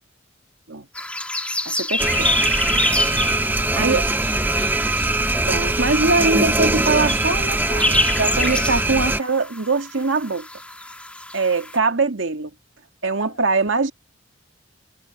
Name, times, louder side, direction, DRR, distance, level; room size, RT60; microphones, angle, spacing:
sound 1, 0.9-11.8, left 1 dB, 5° left, 2.2 m, -27 dB
voice 1, 1.7-2.3 3.8-4.0 5.5-10.5 11.3-12.5 13.0-13.9, right 3 dB, 75° right, 2.0 m, -22 dB
sound 2, 2.0-9.2, right 2 dB, 10° right, 0.7 m, -21 dB
voice 2, 3.3-4.6 8.6-8.9 13.2-13.4, left 4 dB, 50° left, 6.7 m, -47 dB
head